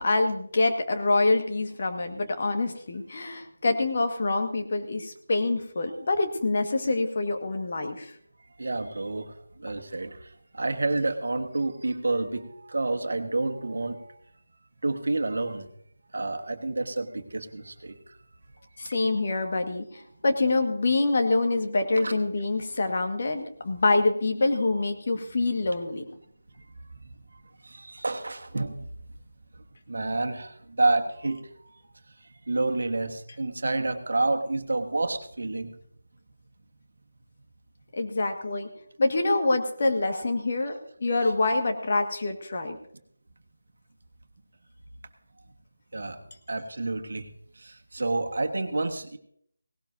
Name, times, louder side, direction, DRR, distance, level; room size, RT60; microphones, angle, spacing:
voice 1, 0.0-8.1 18.8-26.0 37.9-38.7 39.0-42.8, left 2 dB, 45° left, 4 dB, 1.7 m, -26 dB
voice 2, 8.6-14.2 14.8-15.7 16.1-18.2 18.8-18.9 22.0-22.1 26.6-27.1 27.6-28.9 29.5-31.8 32.2-35.7 45.9-46.2 46.5-49.2, right 2 dB, 60° right, 6 dB, 1.4 m, -29 dB
18.0 x 18.0 x 2.7 m, 0.67 s
figure-of-eight pair, 160°, 0 cm